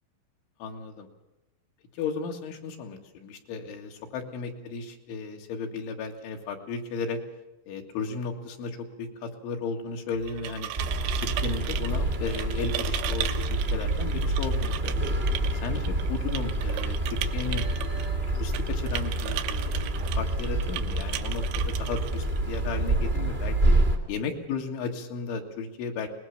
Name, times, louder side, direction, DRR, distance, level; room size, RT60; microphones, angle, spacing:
voice 1, 0.6-1.1 1.9-7.2 7.7-10.7 11.2-15.0 15.5-17.7 18.3-23.8 24.1-26.1, left 4 dB, 90° left, 3 dB, 4.4 m, -34 dB
sound 1, 10.1-22.8, right 12 dB, 85° right, 3.2 m, -37 dB
sound 2, 10.7-24.0, right 2 dB, 45° right, 0.7 m, -27 dB
22.0 x 19.5 x 7.4 m, 0.99 s
omnidirectional pair, 5.2 m